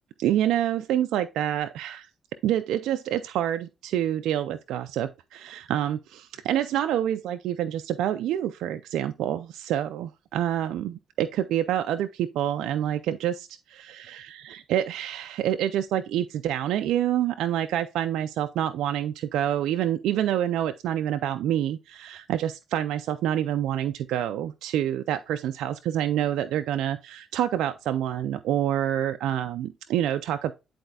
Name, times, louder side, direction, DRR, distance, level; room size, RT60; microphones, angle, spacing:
voice 1, 0.2-2.1 2.4-30.5, right 11 dB, 85° right, 0.3 m, -27 dB
10.5 x 4.2 x 2.3 m
cardioid pair, 90°, 0 cm